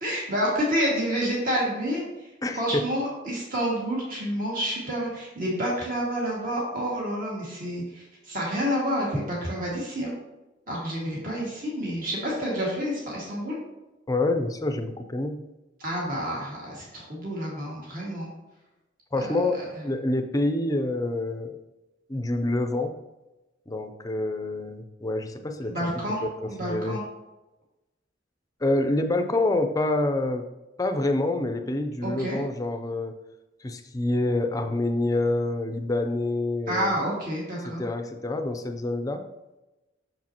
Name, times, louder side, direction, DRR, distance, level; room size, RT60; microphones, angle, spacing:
voice 1, 0.0-2.0 2.5-10.1 10.7-13.6 15.8-18.3 19.1-19.4 25.7-26.2 26.5-27.0 32.0-32.4 36.7-37.8, equal, 50° right, -4 dB, 2.0 m, -29 dB
voice 2, 2.4-2.9 14.1-15.5 19.1-19.5 19.8-21.6 22.1-23.0 23.7-25.8 26.2-27.0 28.6-30.4 30.8-33.2 33.6-36.9 37.6-39.2, left 2 dB, 20° left, 6 dB, 0.5 m, -27 dB
6.7 x 6.2 x 2.9 m, 1.0 s
head